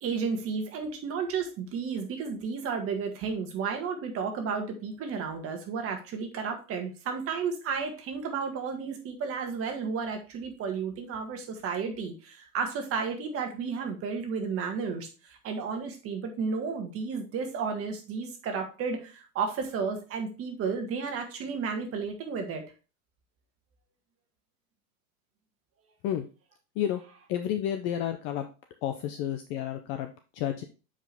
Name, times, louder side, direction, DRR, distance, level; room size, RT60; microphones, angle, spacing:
voice 1, 0.0-22.6, right 5 dB, 30° right, 4 dB, 1.7 m, -32 dB
voice 2, 27.3-28.5 28.8-30.6, left 10 dB, 30° left, 7 dB, 0.4 m, -31 dB
7.9 x 4.9 x 3.4 m, 0.33 s
supercardioid pair, 140°, 45 cm